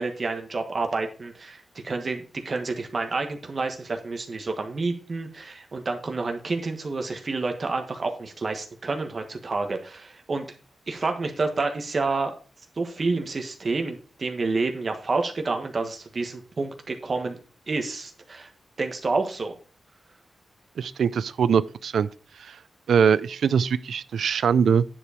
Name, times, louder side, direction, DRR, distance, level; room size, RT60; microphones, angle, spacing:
voice 1, 0.0-10.5 10.9-12.3 12.8-17.4 17.7-18.5 18.8-19.6, right 3 dB, 45° right, 1.4 m, -29 dB
voice 2, 20.8-22.1 22.4-22.6 22.9-24.8, right 7 dB, 80° right, 0.4 m, -22 dB
9.9 x 4.7 x 4.9 m
wide cardioid pair, 110°, 0 cm